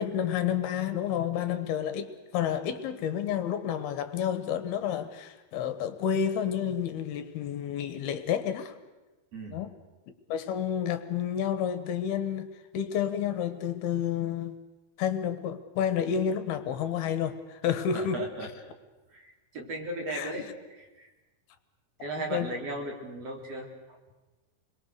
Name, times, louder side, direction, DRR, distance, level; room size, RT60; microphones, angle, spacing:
voice 1, 0.0-8.7 9.5-9.7 10.3-12.5 12.7-14.6 15.0-18.2 20.1-20.4 22.3-22.5, left 9 dB, 75° left, 11 dB, 3.0 m, -30 dB
voice 2, 9.3-9.6 17.9-18.5 19.1-20.5 20.7-21.1 22.0-24.0, right 2 dB, 40° right, 0 dB, 4.6 m, -37 dB
29.0 x 22.5 x 6.6 m, 1.2 s
omnidirectional pair, 4.7 m